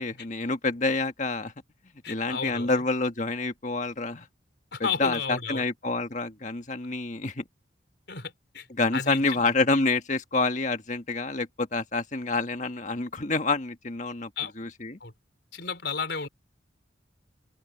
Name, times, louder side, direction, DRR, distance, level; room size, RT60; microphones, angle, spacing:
voice 1, 0.0-1.5 2.1-4.3 5.0-7.4 8.8-14.3 14.6-15.0, left 3 dB, 40° left, 1.7 m, -28 dB
voice 2, 2.0-2.8 4.7-5.6 8.1-8.7 8.9-9.4 14.4-14.5 15.0-15.1 15.5-16.3, left 5 dB, 65° left, 4.4 m, -33 dB
open air
head